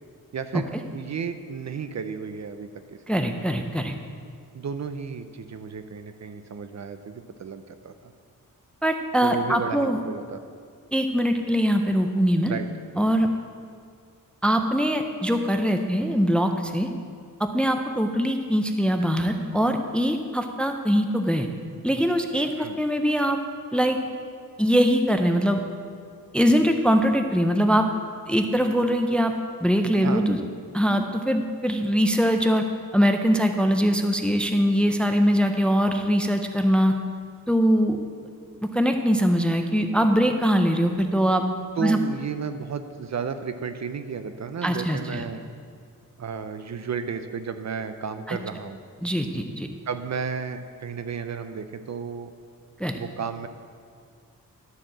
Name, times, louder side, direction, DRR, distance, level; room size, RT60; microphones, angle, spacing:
voice 1, 0.3-3.0 4.5-8.1 9.2-10.4 12.5-12.7 22.6-22.8 30.0-30.3 41.8-45.4 46.2-48.8 49.9-52.3 52.9-53.5, right 6 dB, 50° right, 9 dB, 0.5 m, -33 dB
voice 2, 3.1-3.9 8.8-10.0 10.9-12.6 13.0-13.3 14.4-16.9 17.4-21.5 21.8-23.4 23.7-24.0 24.6-25.6 26.3-27.9 28.3-29.3 29.6-30.4 30.7-32.6 32.9-36.9 37.5-38.0 38.7-41.5 41.8-42.0 44.6-45.2 48.3-48.4 49.0-49.7 52.8-53.0, equal, 5° left, 5 dB, 0.5 m, -22 dB
13.0 x 4.5 x 7.4 m, 2.1 s
wide cardioid pair, 170°, 35 cm